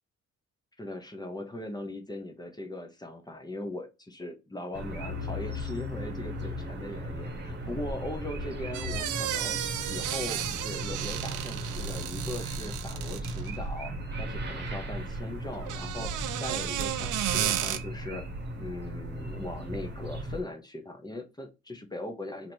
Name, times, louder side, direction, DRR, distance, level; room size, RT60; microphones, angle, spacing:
voice 1, 0.8-13.9 14.2-16.1 16.4-18.3 18.6-22.5, left 1 dB, 15° left, 5 dB, 0.8 m, -39 dB
sound 1, 4.7-20.4, right 1 dB, 35° right, 1.2 m, -36 dB
sound 2, 8.7-13.6 15.5-17.8, right 11 dB, 80° right, 0.6 m, -33 dB
2.9 x 2.7 x 4.4 m, 0.27 s
cardioid pair, 90°, 30 cm